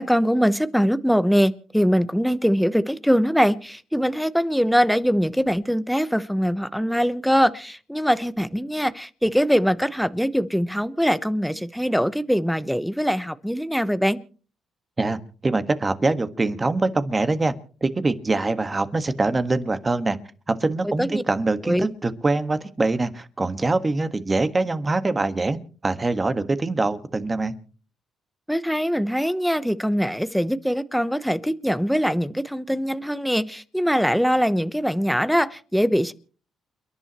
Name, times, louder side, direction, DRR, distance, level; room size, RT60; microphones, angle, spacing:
voice 1, 0.0-14.2 20.8-21.2 21.7-21.9 28.5-36.1, equal, ahead, 1.0 m, -22 dB
voice 2, 15.0-17.5 17.8-20.2 20.5-27.5, right 3 dB, 25° right, 1.6 m, -24 dB
29.5 x 11.0 x 3.1 m
cardioid pair, 90°, 0 cm